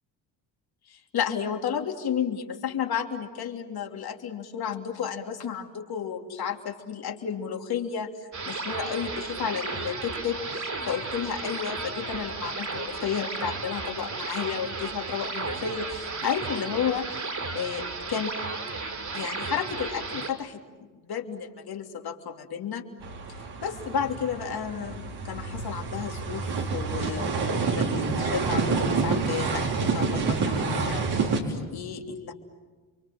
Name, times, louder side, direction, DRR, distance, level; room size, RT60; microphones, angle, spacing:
voice 1, 0.9-8.1 8.5-17.1 17.5-18.3 19.1-22.8 23.3-27.9 28.2-32.3, left 7 dB, 55° left, 4 dB, 3.2 m, -32 dB
sound 1, 8.3-20.3, right 3 dB, 40° right, 5.2 m, -34 dB
sound 2, 23.0-31.4, right 4 dB, 60° right, 4.9 m, -28 dB
29.5 x 24.0 x 7.7 m, 1.4 s
supercardioid pair, 70°, 45 cm